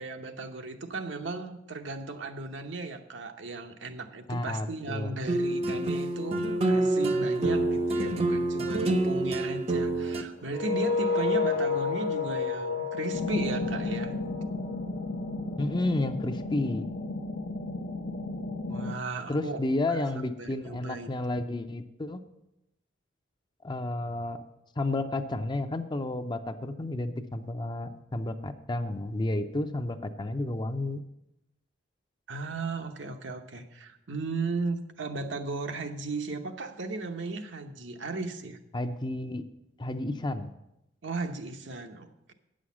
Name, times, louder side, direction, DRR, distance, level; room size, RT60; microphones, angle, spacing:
voice 1, 0.0-14.1 18.7-19.6 19.9-21.1 32.3-38.6 41.0-42.3, right 3 dB, 80° right, 5 dB, 0.9 m, -36 dB
voice 2, 4.3-5.1 15.6-16.9 19.3-22.2 23.6-24.4 24.8-31.0 38.7-39.4 39.8-40.5, left 2 dB, 25° left, 8 dB, 0.5 m, -31 dB
sound 1, 5.3-10.2, right 2 dB, 35° right, 0.7 m, -27 dB
sound 2, 10.5-15.3, left 4 dB, 60° left, 1.3 m, -30 dB
sound 3, 13.1-18.9, left 2 dB, 75° left, 0.8 m, -34 dB
9.3 x 6.4 x 7.2 m, 0.86 s
head